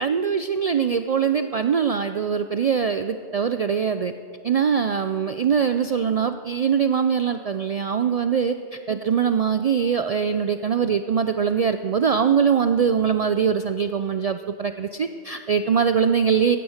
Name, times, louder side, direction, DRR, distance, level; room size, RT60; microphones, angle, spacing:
voice 1, 0.0-4.1 4.4-16.6, right 7 dB, 75° right, 9 dB, 0.3 m, -22 dB
15.0 x 9.9 x 6.4 m, 2.4 s
omnidirectional pair, 1.2 m